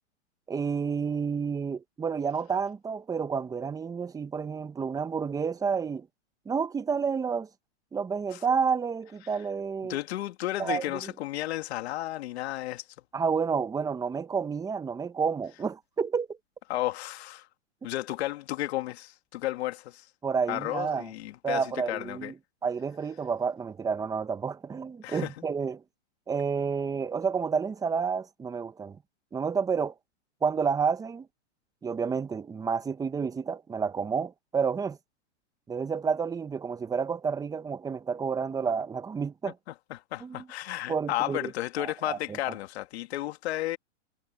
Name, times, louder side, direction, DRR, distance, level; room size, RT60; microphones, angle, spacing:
voice 1, 0.5-6.1 6.5-7.5 7.9-10.0 10.6-11.1 13.1-16.4 20.2-21.1 21.4-22.3 22.6-25.8 26.3-29.0 29.3-29.9 30.4-31.3 31.8-35.0 35.7-39.5 40.2-40.4 40.9-41.5 41.8-42.4, right 6 dB, 10° right, 1.0 m, -30 dB
voice 2, 9.8-12.8 16.7-17.5 17.8-20.1 20.5-22.3 25.0-25.3 39.7-43.8, left 15 dB, 60° left, 2.6 m, -33 dB
hypercardioid pair, 135°, 37 cm